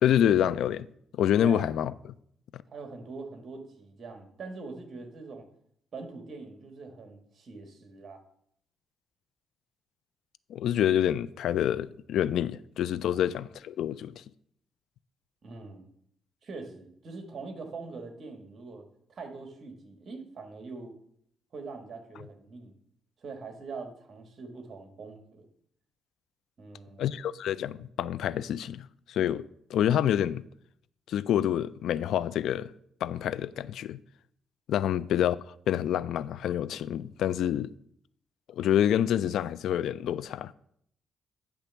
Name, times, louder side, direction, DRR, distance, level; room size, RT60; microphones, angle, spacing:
voice 1, 0.0-0.9 1.1-1.9 10.5-14.2 27.0-29.4 29.7-30.4 31.1-32.7 33.0-34.0 34.7-35.4 35.7-37.7 38.5-40.5, left 10 dB, 80° left, 0.3 m, -27 dB
voice 2, 2.7-5.5 5.9-8.2 13.1-13.2 15.4-15.9 16.4-20.9 21.5-22.7 23.2-25.5 26.6-27.2 34.8-34.9, right 4 dB, 45° right, 1.6 m, -43 dB
9.9 x 3.4 x 6.9 m
cardioid pair, 120°, 0 cm